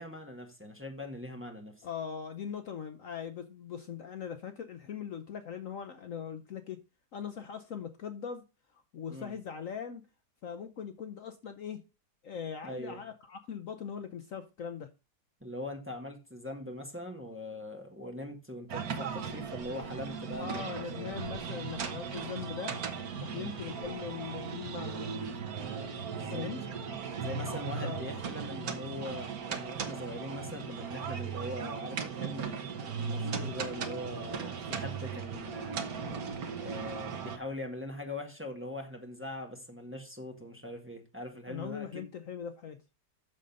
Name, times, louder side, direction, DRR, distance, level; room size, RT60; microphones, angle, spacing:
voice 1, 0.0-1.8 9.1-9.3 12.6-13.0 15.4-20.6 20.9-21.2 23.4-23.6 26.1-26.5 27.2-32.6 33.0-35.8 36.5-42.1, left 1 dB, 10° right, 1.4 m, -42 dB
voice 2, 1.8-6.8 7.1-8.4 8.7-10.0 10.4-11.8 12.2-14.9 20.4-22.7 23.2-25.1 26.3-26.6 27.8-28.1 41.5-42.8, left 7 dB, 60° left, 1.0 m, -40 dB
sound 1, 18.7-37.4, right 6 dB, 65° right, 1.6 m, -37 dB
7.6 x 6.6 x 5.3 m
omnidirectional pair, 1.8 m